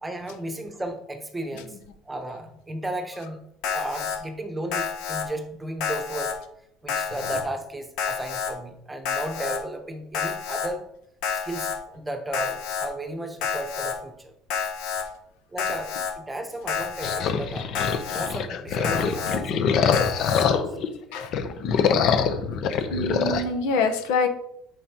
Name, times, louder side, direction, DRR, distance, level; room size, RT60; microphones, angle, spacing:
voice 1, 0.0-1.8 2.0-3.4 3.7-6.3 6.8-10.8 11.3-14.3 15.5-17.7 18.1-20.6 23.4-23.8, right 1 dB, 10° right, 6 dB, 1.0 m, -34 dB
Alarm, 3.6-4.2 4.7-5.2 5.8-6.3 6.9-7.4 8.0-8.5 9.0-9.6 10.1-10.7 11.2-11.8 12.3-12.9 13.4-13.9 14.5-15.0 15.6-16.1 16.7-17.2 17.7-18.3 18.8-19.4 19.9-20.4, left 7 dB, 70° left, 1.3 m, -29 dB
sound 1, 17.0-20.9 21.2-23.4, left 6 dB, 50° left, 0.8 m, -24 dB
voice 2, 22.9-24.3, left 3 dB, 85° left, 6 dB, 1.0 m, -25 dB
8.9 x 6.3 x 3.0 m, 0.76 s
cardioid pair, 135°, 0 cm